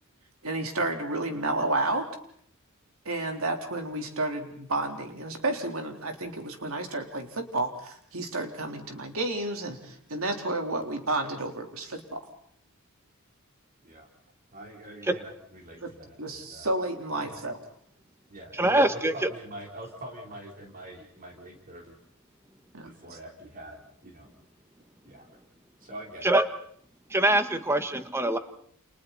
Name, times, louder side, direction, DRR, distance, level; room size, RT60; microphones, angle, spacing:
voice 1, 0.4-2.1 3.1-12.2 15.8-17.6 22.7-23.2, right 2 dB, 70° right, 4 dB, 3.6 m, -31 dB
voice 2, 14.5-16.7 17.2-17.4 18.3-22.0 22.8-24.3 25.0-25.3 25.8-26.3, right 1 dB, 40° right, 1 dB, 3.7 m, -44 dB
voice 3, 18.5-19.3 26.2-26.5 27.1-28.4, right 1 dB, 10° right, 9 dB, 1.4 m, -24 dB
30.0 x 27.5 x 4.1 m, 0.63 s
head